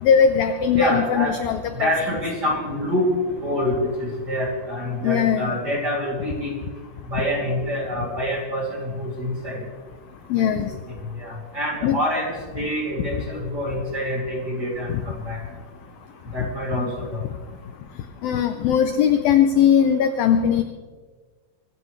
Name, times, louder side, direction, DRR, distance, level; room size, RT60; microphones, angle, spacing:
voice 1, 0.0-1.9 5.0-5.6 10.3-10.7 11.8-12.0 14.9-15.0 16.7-16.9 18.2-20.6, left 8 dB, 80° left, 8 dB, 2.1 m, -19 dB
voice 2, 0.8-1.4 1.7-3.1 3.4-6.5 7.1-9.6 10.4-10.5 11.2-14.9 15.2-15.4 16.3-17.2, equal, 25° right, -2 dB, 2.6 m, -26 dB
24.5 x 15.5 x 3.2 m, 1.4 s
omnidirectional pair, 5.1 m